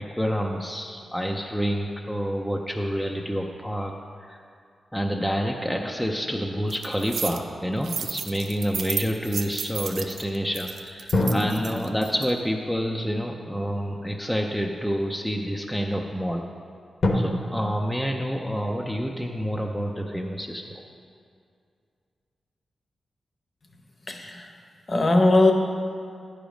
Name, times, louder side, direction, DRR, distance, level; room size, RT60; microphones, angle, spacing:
voice 1, 0.0-3.9 4.2-4.4 4.9-16.4 17.1-20.7, equal, ahead, 0 dB, 0.5 m, -28 dB
sound 1, 5.7-8.2 11.1-14.5 15.2-15.3 17.0-17.1, left 2 dB, 60° left, 0.9 m, -31 dB
sound 2, 6.7-7.4 7.8-12.3, right 6 dB, 75° right, 0.4 m, -33 dB
voice 2, 24.1-24.5 24.9-25.5, left 2 dB, 35° left, 4 dB, 0.8 m, -19 dB
10.0 x 5.1 x 5.0 m, 2.3 s
wide cardioid pair, 100°, 0 cm